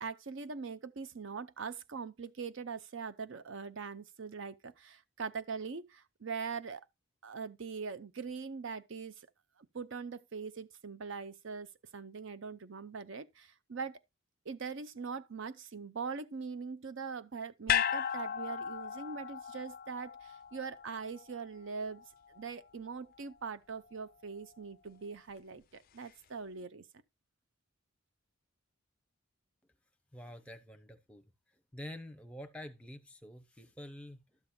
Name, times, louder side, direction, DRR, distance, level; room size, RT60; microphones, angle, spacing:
voice 1, 0.0-6.9 7.2-9.3 9.6-14.0 14.5-22.0 22.4-26.8, right 5 dB, 60° right, 0.6 m, -42 dB
sound 1, 17.7-22.0 22.3-22.4, left 9 dB, 40° left, 0.4 m, -35 dB
voice 2, 30.1-31.3 31.7-34.4, left 1 dB, 5° left, 0.8 m, -48 dB
12.0 x 7.3 x 2.3 m
head